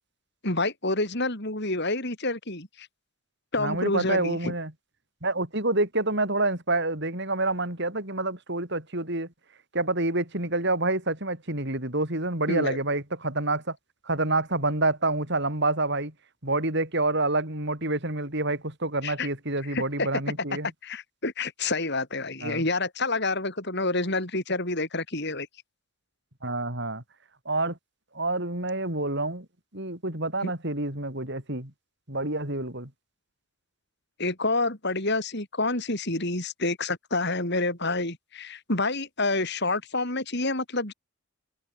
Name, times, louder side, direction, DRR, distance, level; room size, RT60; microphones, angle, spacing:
voice 1, 0.4-2.9 3.5-4.5 12.5-12.8 19.0-19.3 19.7-20.1 20.8-25.5 30.4-30.5 34.2-40.9, left 2 dB, 50° left, 4.8 m, -28 dB
voice 2, 3.6-4.7 5.2-9.3 9.7-13.8 14.0-16.1 16.4-20.7 22.4-22.6 26.4-27.0 27.5-27.8 28.1-29.5 29.7-31.7 32.1-32.9, right 2 dB, 50° right, 5.4 m, -27 dB
head